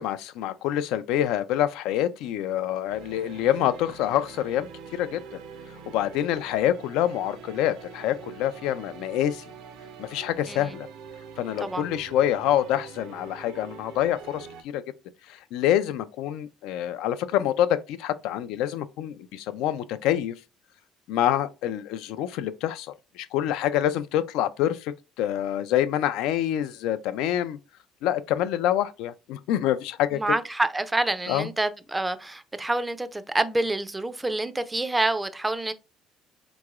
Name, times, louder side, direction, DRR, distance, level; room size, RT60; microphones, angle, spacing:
voice 1, 0.0-5.2 5.9-9.4 10.0-10.9 11.4-14.5 14.7-14.8 15.3-20.4 21.1-27.6 28.0-30.2 31.3-31.5, left 11 dB, 85° left, 0.3 m, -26 dB
sound 1, 2.9-14.6, right 6 dB, 85° right, 0.5 m, -44 dB
voice 2, 30.1-35.7, right 2 dB, 10° right, 0.3 m, -27 dB
3.5 x 3.0 x 2.4 m
cardioid pair, 135°, 0 cm